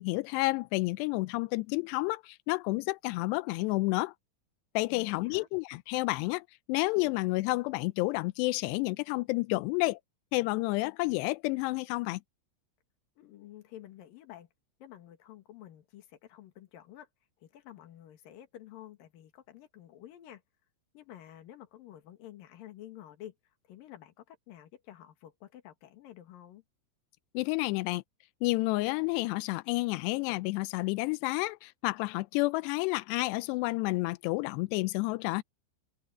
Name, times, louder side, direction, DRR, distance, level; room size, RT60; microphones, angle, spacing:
voice 1, 0.0-4.1 4.8-10.0 10.3-12.2 27.3-28.0 28.4-35.4, left 22 dB, 90° left, 2.4 m, -30 dB
voice 2, 4.9-5.5 13.2-14.5 14.8-17.1 17.4-20.4 20.9-23.3 23.7-26.6, left 12 dB, 55° left, 3.1 m, -50 dB
open air
omnidirectional pair, 5.5 m